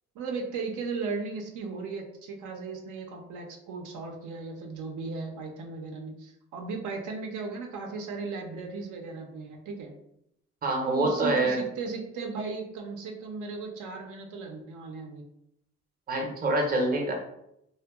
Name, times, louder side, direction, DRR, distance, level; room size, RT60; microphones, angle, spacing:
voice 1, 0.2-9.9 10.9-15.2, right 4 dB, 80° right, 2 dB, 0.5 m, -36 dB
voice 2, 10.6-11.6 16.1-17.1, right 1 dB, 30° right, 1 dB, 0.6 m, -26 dB
2.6 x 2.2 x 2.2 m, 0.78 s
cardioid pair, 90°, 30 cm